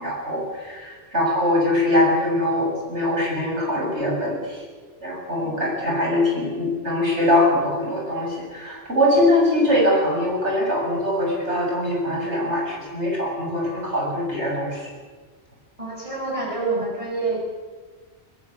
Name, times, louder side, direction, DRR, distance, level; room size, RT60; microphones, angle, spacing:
voice 1, 0.0-4.6 5.0-14.9, left 1 dB, 85° right, -2 dB, 7.6 m, -22 dB
voice 2, 15.8-17.4, right 3 dB, 30° right, -2 dB, 6.7 m, -27 dB
22.5 x 21.5 x 8.6 m, 1.4 s
omnidirectional pair, 1.1 m